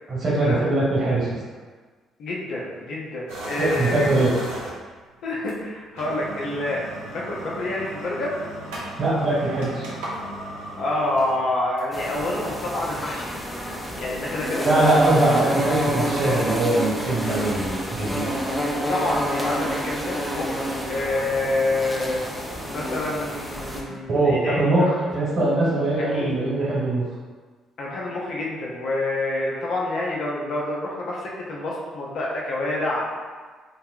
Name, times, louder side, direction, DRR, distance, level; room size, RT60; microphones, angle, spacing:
voice 1, 0.1-1.3 3.6-4.3 9.0-9.9 14.6-18.2 24.1-27.0, right 2 dB, 55° right, -7 dB, 1.5 m, -22 dB
voice 2, 2.2-4.1 5.2-6.8 7.1-8.4 10.8-13.3 14.0-14.7 18.9-22.2 22.7-24.9 25.9-26.3 27.8-33.1, left 2 dB, 65° left, -3 dB, 0.6 m, -27 dB
sound 1, 3.3-5.0 5.5-5.6 5.9-12.1, right 1 dB, 80° right, 0.6 m, -35 dB
sound 2, 11.9-23.8, equal, 5° left, 0.6 m, -28 dB
3.3 x 2.1 x 2.4 m, 1.4 s
hypercardioid pair, 50°, 0 cm